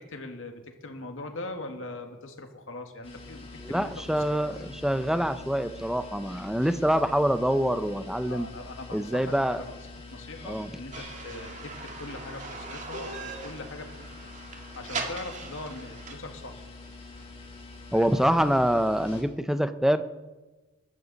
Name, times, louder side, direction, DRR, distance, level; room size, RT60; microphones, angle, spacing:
voice 1, 0.0-4.6 8.2-9.8 10.1-13.9 14.8-16.7 17.9-18.5, left 2 dB, 70° left, 5 dB, 1.9 m, -41 dB
sound 1, 3.0-19.2, left 3 dB, 30° left, 2.8 m, -45 dB
voice 2, 3.7-8.5 8.9-9.6 10.5-10.7 17.9-20.0, equal, ahead, 11 dB, 0.5 m, -25 dB
sound 2, 10.9-16.2, right 3 dB, 35° right, 1.9 m, -40 dB
22.0 x 12.0 x 4.1 m, 1.2 s
head